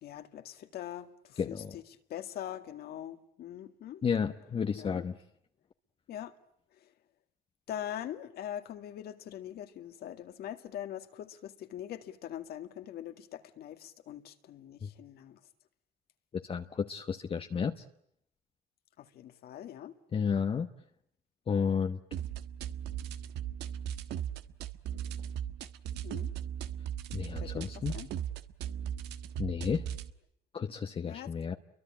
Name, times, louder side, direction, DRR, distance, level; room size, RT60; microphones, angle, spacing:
voice 1, 0.0-1.8 2.1-4.0 4.8-5.0 6.1-6.3 7.7-15.4 19.0-19.9 26.0-26.3 27.4-28.1 31.0-31.3, left 11 dB, 70° left, 2.1 m, -42 dB
voice 2, 1.4-1.7 4.0-5.1 14.8-14.9 16.4-17.7 20.1-20.7 21.5-22.0 27.1-28.0 29.4-29.8 30.5-31.5, left 6 dB, 35° left, 1.1 m, -32 dB
sound 1, 22.1-30.1, right 9 dB, 80° right, 1.4 m, -38 dB
29.5 x 23.5 x 8.7 m
cardioid pair, 110°, 17 cm